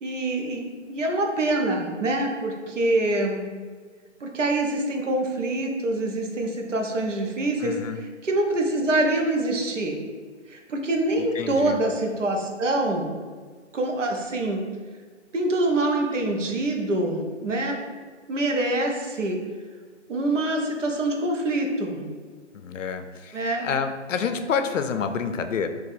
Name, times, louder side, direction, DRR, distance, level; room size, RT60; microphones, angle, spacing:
voice 1, 0.0-3.5 4.2-10.0 10.5-13.2 13.7-14.6 15.3-17.8 18.3-19.4 20.1-22.0 23.3-23.7, right 2 dB, 80° right, 2 dB, 0.8 m, -25 dB
voice 2, 7.6-8.0 11.2-11.8 22.5-25.7, left 6 dB, 90° left, 8 dB, 0.5 m, -28 dB
2.6 x 2.5 x 4.0 m, 1.5 s
hypercardioid pair, 170°, 37 cm